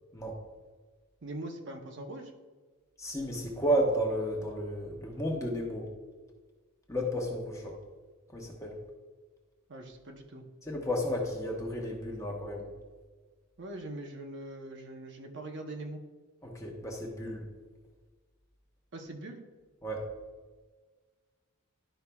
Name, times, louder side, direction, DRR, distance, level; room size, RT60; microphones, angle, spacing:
voice 1, 1.2-2.3 9.7-10.4 13.6-16.0 18.9-19.5, right 1 dB, 55° right, 2 dB, 0.8 m, -42 dB
voice 2, 3.0-5.9 6.9-7.7 8.3-8.8 10.6-12.7 16.4-17.4 19.8-20.0, equal, 15° left, 0 dB, 1.1 m, -32 dB
11.5 x 5.5 x 2.3 m, 1.4 s
head